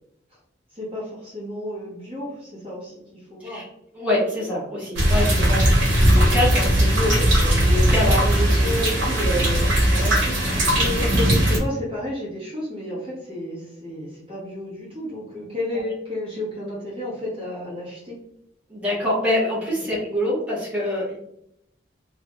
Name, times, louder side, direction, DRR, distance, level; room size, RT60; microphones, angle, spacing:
voice 1, 0.7-3.7 5.7-5.9 8.6-9.1 9.5-9.6 10.6-18.2 19.7-19.9, left 1 dB, 30° right, -7 dB, 1.0 m, -32 dB
voice 2, 3.9-8.7 9.1-10.6 18.7-21.2, left 1 dB, 5° right, -7 dB, 0.9 m, -26 dB
sound 1, 5.0-11.6, right 1 dB, 80° right, 0.9 m, -19 dB
2.7 x 2.2 x 2.8 m, 0.78 s
head